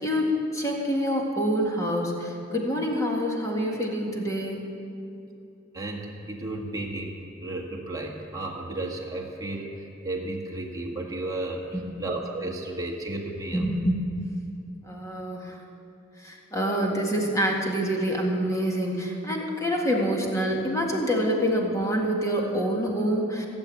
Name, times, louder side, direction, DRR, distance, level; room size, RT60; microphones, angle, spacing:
voice 1, 0.0-4.7 11.7-12.0 13.5-14.0 14.8-15.6 16.2-23.5, equal, 15° left, -1 dB, 1.8 m, -26 dB
voice 2, 5.7-11.6 12.0-13.7, right 2 dB, 20° right, -1 dB, 1.7 m, -33 dB
16.5 x 7.2 x 8.5 m, 2.7 s
head